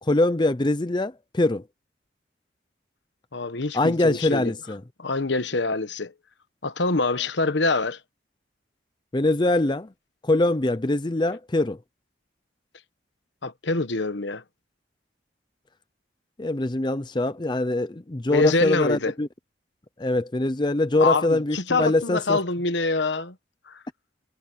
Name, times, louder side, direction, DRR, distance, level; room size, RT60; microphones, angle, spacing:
voice 1, 0.0-1.6 3.7-4.8 9.1-9.9 10.2-11.8 16.4-19.3 20.0-22.4, left 2 dB, 25° left, 0.6 m, -23 dB
voice 2, 3.3-4.5 5.0-6.1 6.6-8.0 13.4-14.4 18.3-19.1 21.0-23.3 23.7-23.8, left 3 dB, 75° left, 1.2 m, -25 dB
head